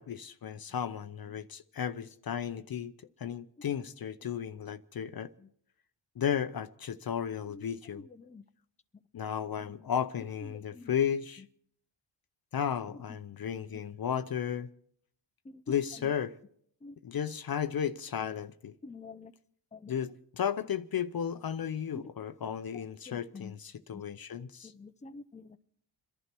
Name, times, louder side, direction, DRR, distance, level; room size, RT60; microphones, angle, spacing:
voice 1, 0.0-2.9 3.2-5.3 6.2-8.1 9.1-11.4 12.5-14.7 15.7-16.3 17.0-18.7 19.9-24.7, left 8 dB, 50° left, 0.7 m, -34 dB
voice 2, 18.8-19.3 19.7-19.9 23.1-23.5 23.9-24.0 24.6-25.6, left 4 dB, 15° left, 0.7 m, -48 dB
27.5 x 11.0 x 4.5 m
cardioid pair, 80°, 47 cm